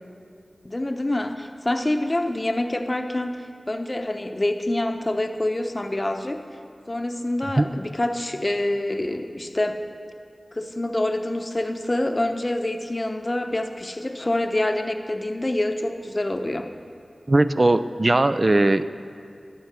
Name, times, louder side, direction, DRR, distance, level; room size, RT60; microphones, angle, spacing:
voice 1, 0.6-6.4 6.9-9.8 10.5-16.7, left 1 dB, 35° left, 6 dB, 0.8 m, -26 dB
voice 2, 17.3-18.8, right 2 dB, 45° right, 12 dB, 0.4 m, -19 dB
11.5 x 9.2 x 6.0 m, 2.3 s
wide cardioid pair, 50°, 0 cm